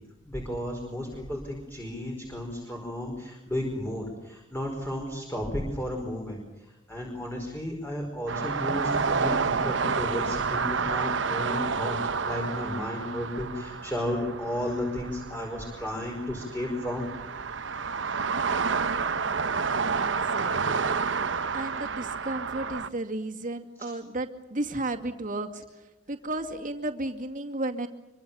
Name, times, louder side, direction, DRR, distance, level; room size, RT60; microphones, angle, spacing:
voice 1, 0.2-6.4 6.9-12.0 12.2-17.1, left 1 dB, 10° left, 1 dB, 5.0 m, -33 dB
sound 1, 8.3-22.9, right 5 dB, 80° right, 0.9 m, -29 dB
voice 2, 19.9-20.8 21.5-25.6 26.1-27.9, right 2 dB, 45° right, 5 dB, 2.4 m, -33 dB
26.0 x 25.0 x 7.1 m, 1.0 s
head